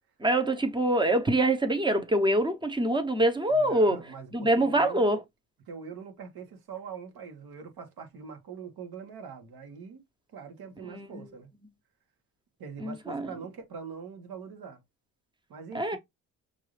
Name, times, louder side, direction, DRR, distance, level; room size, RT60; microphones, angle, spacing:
voice 1, 0.2-4.0 4.3-5.2 10.9-11.3 12.8-13.2 15.7-16.0, right 1 dB, 10° right, 0.9 m, -25 dB
voice 2, 3.5-5.2 5.7-10.0 10.3-11.5 12.6-14.8 15.5-16.0, right 6 dB, 75° right, 1.7 m, -43 dB
6.1 x 2.7 x 3.2 m
cardioid pair, 110°, 37 cm